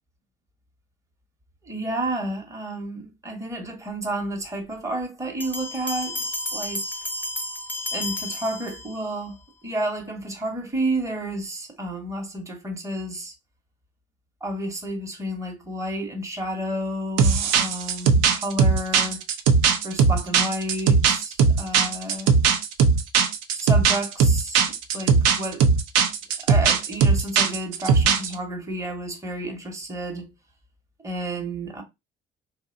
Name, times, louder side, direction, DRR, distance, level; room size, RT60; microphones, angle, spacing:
voice 1, 1.6-6.8 7.9-9.4 9.6-13.3 14.4-19.2 19.8-22.3 23.5-24.6 24.9-25.7 26.4-30.3 31.0-31.8, right 1 dB, 10° right, 0.8 m, -31 dB
sound 1, 5.4-9.2, left 1 dB, 5° left, 0.4 m, -32 dB
sound 2, 17.2-28.3, right 5 dB, 65° right, 0.5 m, -19 dB
2.7 x 2.1 x 2.5 m
hypercardioid pair, 45°, 29 cm